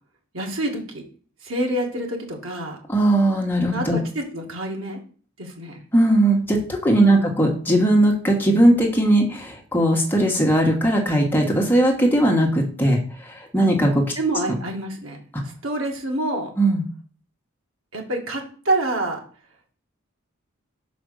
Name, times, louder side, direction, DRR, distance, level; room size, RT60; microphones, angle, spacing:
voice 1, 0.3-1.0 1.4-2.8 3.7-5.0 5.4-5.8 7.0-7.3 14.2-15.2 15.6-16.5 17.9-19.2, right 1 dB, 70° right, 1 dB, 2.1 m, -27 dB
voice 2, 2.9-4.0 5.9-13.0 13.3-14.0 16.6-16.8, right 1 dB, 10° left, 0 dB, 1.4 m, -18 dB
6.1 x 5.1 x 6.4 m, 0.43 s
head